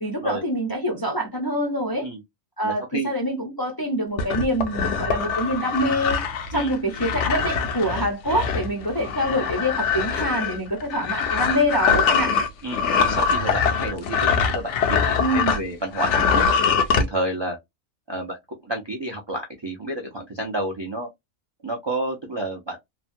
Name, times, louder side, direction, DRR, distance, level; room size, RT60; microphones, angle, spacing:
voice 1, 0.0-2.1 2.6-6.2 6.5-12.3 15.2-15.6, equal, 25° left, 0.5 m, -25 dB
voice 2, 2.6-3.1 6.5-6.7 12.6-16.4 16.9-17.6 18.1-18.4 18.6-21.1 21.6-22.8, right 1 dB, 35° right, 0.4 m, -30 dB
sound 1, 4.2-15.6 15.9-17.1, left 6 dB, 70° left, 0.9 m, -23 dB
2.9 x 2.2 x 2.6 m
omnidirectional pair, 1.4 m